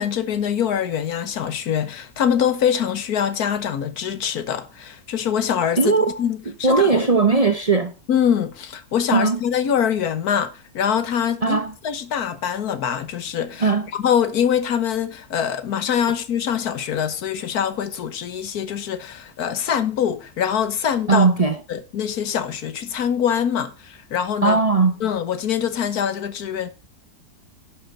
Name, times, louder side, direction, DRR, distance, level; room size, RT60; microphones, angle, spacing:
voice 1, 0.0-5.9 6.2-6.4 6.7-7.1 8.1-13.7 14.0-21.3 21.7-24.6 25.0-26.7, left 8 dB, 80° left, 1.6 m, -24 dB
voice 2, 5.8-6.2 6.6-7.9 9.1-9.4 11.4-11.7 13.6-13.9 21.1-21.6 24.4-25.0, right 4 dB, 35° right, 0.7 m, -18 dB
11.0 x 6.7 x 5.5 m
omnidirectional pair, 1.6 m